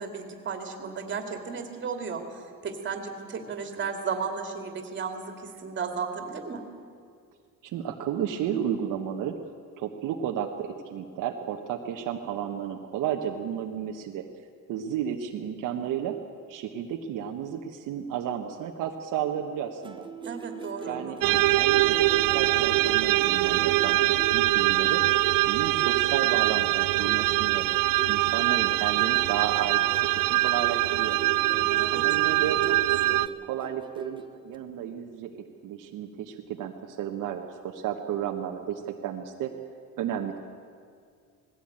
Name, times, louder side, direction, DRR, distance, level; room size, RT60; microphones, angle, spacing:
voice 1, 0.0-6.6 20.2-21.4 31.4-32.8 33.1-33.2, right 5 dB, 35° right, 5 dB, 2.5 m, -35 dB
voice 2, 7.6-9.4 9.8-14.2 14.7-16.2 16.5-20.1 20.8-25.0 25.5-27.7 28.1-31.2 31.9-32.6 32.9-33.0 33.4-35.3 35.6-39.5 40.0-40.4, right 9 dB, 75° right, 3 dB, 1.3 m, -32 dB
sound 1, 19.8-34.6, right 4 dB, 15° right, 1.0 m, -42 dB
sound 2, 21.2-33.3, right 17 dB, 90° right, 0.6 m, -23 dB
19.5 x 16.0 x 8.9 m, 2.2 s
cardioid pair, 145°, 32 cm